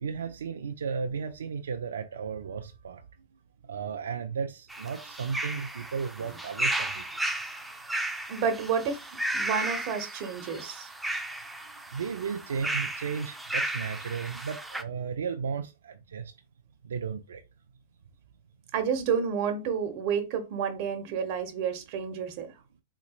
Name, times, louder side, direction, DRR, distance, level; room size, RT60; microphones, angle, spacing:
voice 1, 0.0-3.0 3.7-7.0 11.9-16.3 16.8-17.4, right 6 dB, 85° right, 0.4 m, -34 dB
sound 1, 4.7-14.8, right 1 dB, 5° right, 0.5 m, -34 dB
voice 2, 8.3-9.0 9.3-10.9 18.7-22.5, right 6 dB, 50° right, 1.0 m, -30 dB
4.0 x 3.1 x 2.4 m
hypercardioid pair, 125°, 0 cm